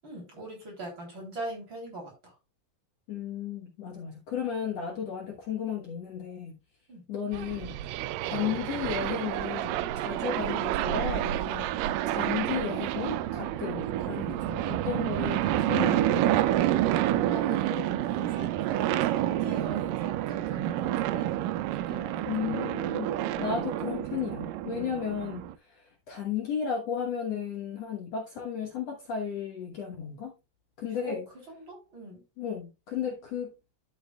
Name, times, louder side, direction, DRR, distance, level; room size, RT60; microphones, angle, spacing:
voice 1, 0.0-2.3 6.9-7.1 17.3-21.4 21.9-22.3 31.0-31.2 31.5-32.2, right 1 dB, 35° right, 3.7 m, -41 dB
voice 2, 3.1-6.6 7.1-7.8 8.2-11.7 12.1-16.4 22.3-30.3 30.8-31.3 32.4-33.5, left 8 dB, 60° left, 2.1 m, -34 dB
sound 1, 7.3-25.5, right 13 dB, 85° right, 2.2 m, -29 dB
12.0 x 6.4 x 2.3 m
omnidirectional pair, 3.9 m